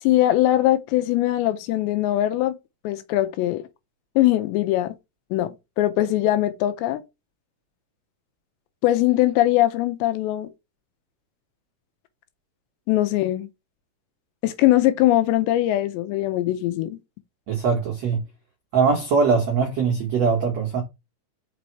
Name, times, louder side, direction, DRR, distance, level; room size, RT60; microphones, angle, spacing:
voice 1, 0.0-2.6 2.8-3.6 4.2-5.0 5.3-7.0 8.8-10.5 12.9-13.5 14.4-17.0, left 14 dB, 80° left, 2.7 m, -21 dB
voice 2, 17.5-18.2 18.7-20.8, right 5 dB, 80° right, 1.4 m, -21 dB
5.6 x 5.1 x 4.6 m
omnidirectional pair, 5.4 m